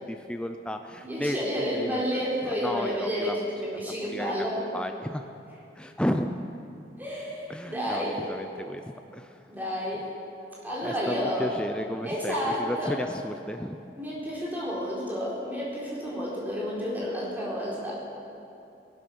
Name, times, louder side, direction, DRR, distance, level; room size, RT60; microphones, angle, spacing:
voice 1, 0.1-1.4 1.7-3.4 3.7-5.2 5.8-6.3 7.5-8.8 9.1-9.4 10.8-13.8, equal, 5° left, 6 dB, 0.5 m, -33 dB
voice 2, 1.0-4.7 7.0-8.2 9.5-10.1 10.6-11.5 12.0-13.0 14.0-18.0, equal, 10° right, -6 dB, 4.0 m, -30 dB
19.0 x 11.5 x 6.1 m, 2.7 s
head